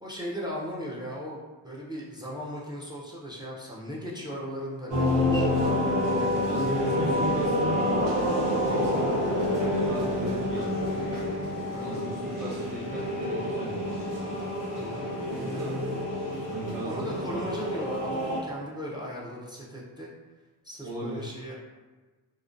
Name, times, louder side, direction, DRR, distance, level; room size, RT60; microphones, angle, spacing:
voice 1, 0.0-6.3 11.7-12.0 14.7-15.1 16.8-20.1 20.6-21.5, equal, 10° right, -5 dB, 0.4 m, -37 dB
sound 1, 4.9-18.4, left 1 dB, 85° right, 0.8 m, -28 dB
voice 2, 6.4-8.1 8.4-9.2 9.6-11.3 11.8-14.1 15.3-16.1 16.5-17.4 20.8-21.2 21.5-21.6, right 1 dB, 55° right, -6 dB, 0.9 m, -37 dB
2.4 x 2.1 x 2.4 m, 1.3 s
cardioid pair, 100°, 40 cm